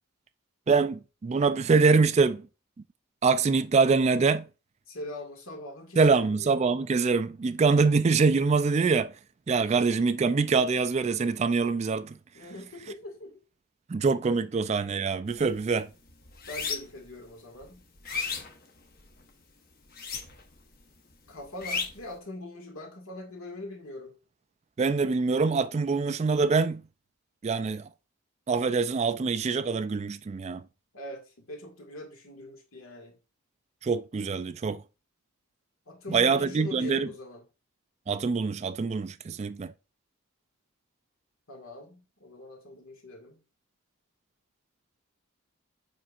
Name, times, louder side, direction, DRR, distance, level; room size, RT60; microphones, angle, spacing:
voice 1, 0.7-2.4 3.2-4.5 6.0-9.1 9.5-12.2 13.9-15.9 24.8-26.8 27.4-27.8 28.5-30.6 33.8-34.8 36.1-37.1 38.1-39.7, right 4 dB, 30° right, 0.3 m, -24 dB
voice 2, 4.9-6.5 12.3-13.4 16.5-17.8 21.3-24.1 30.9-33.2 35.9-37.5 41.5-43.4, left 1 dB, 80° left, 2.0 m, -42 dB
sound 1, 15.3-15.6 15.9-17.1 17.5-19.2 19.9-20.6 20.9-22.1, left 5 dB, 45° left, 0.9 m, -34 dB
7.4 x 5.3 x 2.4 m
head